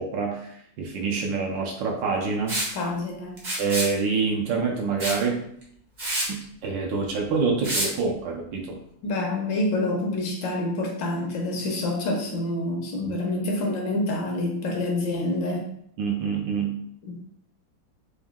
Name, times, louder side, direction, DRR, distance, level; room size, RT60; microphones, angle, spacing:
voice 1, 0.0-2.8 3.6-5.5 6.3-6.4 6.6-8.8 13.0-13.2 16.0-16.7, right 5 dB, 70° right, 0 dB, 1.2 m, -26 dB
Liquid, 2.5-2.7 3.4-3.9 5.0-5.2 5.6-5.7 6.0-6.3 7.6-7.9, right 1 dB, 35° right, 0.7 m, -27 dB
voice 2, 2.7-3.4 9.0-15.7 17.1-17.2, left 2 dB, 70° left, 0 dB, 1.3 m, -27 dB
4.0 x 2.6 x 3.5 m, 0.70 s
omnidirectional pair, 2.3 m